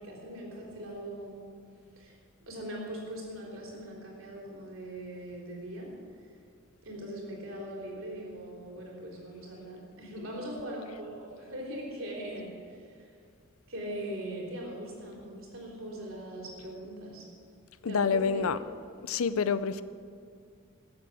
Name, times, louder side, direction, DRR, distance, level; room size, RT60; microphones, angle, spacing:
voice 1, 0.0-1.5 2.0-2.2 2.5-5.9 6.8-13.1 13.7-17.2 17.9-18.5, right 1 dB, 70° right, -2 dB, 3.7 m, -40 dB
voice 2, 17.8-18.6 19.0-19.8, left 6 dB, 80° left, 14 dB, 0.5 m, -27 dB
12.5 x 7.7 x 8.3 m, 2.3 s
head